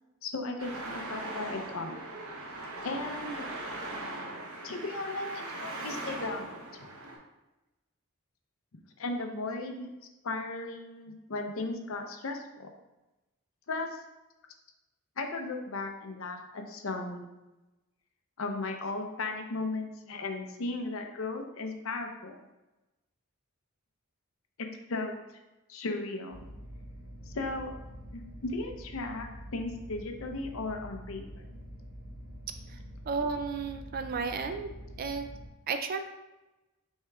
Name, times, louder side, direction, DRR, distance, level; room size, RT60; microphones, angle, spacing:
voice 1, 0.2-2.0 2.8-3.6 4.6-6.6 9.0-9.9 10.2-12.7 13.7-14.0 15.2-17.3 18.4-22.4 24.6-25.2 25.7-26.4 27.3-27.7 28.1-29.3 29.5-31.2, left 2 dB, 65° left, 4 dB, 0.6 m, -36 dB
Traffic noise roadway noise, 0.6-7.2, right 2 dB, 75° right, 0.8 m, -40 dB
sound 1, 26.3-35.5, equal, 20° right, 1.0 m, -46 dB
voice 2, 33.1-34.7 35.0-35.3 35.7-36.1, right 5 dB, 40° right, 7 dB, 0.3 m, -33 dB
6.2 x 3.6 x 2.3 m, 1.0 s
head